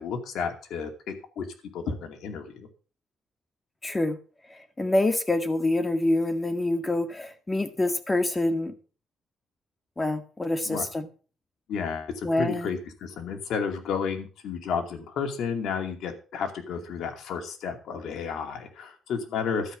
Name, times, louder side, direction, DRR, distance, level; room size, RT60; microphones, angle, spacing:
voice 1, 0.0-1.5 1.7-2.7 10.7-10.9 11.7-19.8, left 6 dB, 75° left, 5 dB, 2.4 m, -32 dB
voice 2, 3.8-4.2 4.5-8.7 10.0-11.1 12.2-12.8, left 2 dB, 20° left, 8 dB, 1.9 m, -26 dB
13.0 x 5.3 x 8.3 m, 0.38 s
cardioid pair, 90°, 0 cm